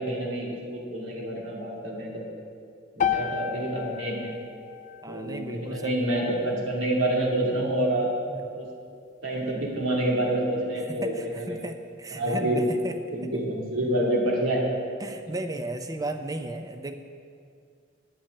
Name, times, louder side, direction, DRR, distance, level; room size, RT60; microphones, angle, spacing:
voice 1, 0.0-2.3 3.0-4.3 5.1-8.1 8.5-8.7 9.2-11.6 12.1-12.6 13.1-14.7 15.3-15.4, right 1 dB, 80° right, -3 dB, 2.5 m, -27 dB
sound 1, 3.0-7.2, left 8 dB, 40° left, 0.4 m, -33 dB
voice 2, 5.0-6.0 8.3-8.4 10.9-13.0 13.2-13.3 15.0-17.0, right 2 dB, 20° right, 7 dB, 0.5 m, -35 dB
10.5 x 5.8 x 8.5 m, 2.4 s
head